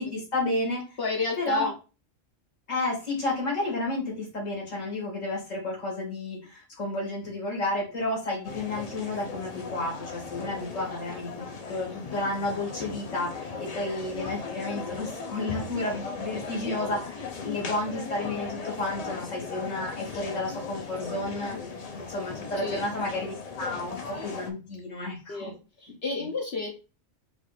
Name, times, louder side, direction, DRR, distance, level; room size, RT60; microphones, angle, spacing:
voice 1, 0.0-0.8 1.4-1.7 2.7-11.4 11.7-21.6 21.9-25.5 26.2-26.3, left 2 dB, 85° left, -1 dB, 2.4 m, -31 dB
voice 2, 1.0-1.7 21.5-21.8 22.6-22.8 25.3-26.8, left 3 dB, 55° left, 0 dB, 0.9 m, -31 dB
sound 1, 8.4-24.5, left 4 dB, 40° left, 0.6 m, -37 dB
4.9 x 2.5 x 4.1 m, 0.32 s
omnidirectional pair, 1.3 m